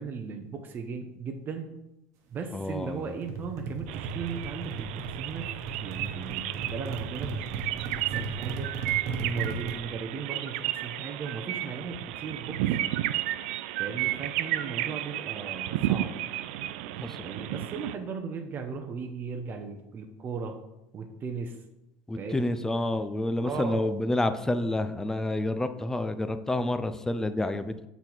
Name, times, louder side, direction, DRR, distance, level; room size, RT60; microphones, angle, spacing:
voice 1, 0.0-1.7 2.3-5.4 5.8-8.7 9.2-12.8 13.8-16.1 17.2-20.6 20.9-21.6 22.2-22.5 23.4-23.9, right 5 dB, 35° right, 3 dB, 0.7 m, -37 dB
voice 2, 2.5-3.0 17.0-17.3 22.1-27.7, left 1 dB, 10° left, 10 dB, 0.4 m, -29 dB
sound 1, 3.2-9.7, right 4 dB, 55° right, 1.1 m, -36 dB
sound 2, 3.9-17.9, right 14 dB, 80° right, 0.4 m, -33 dB
6.6 x 4.0 x 4.5 m, 0.89 s
supercardioid pair, 115°, 6 cm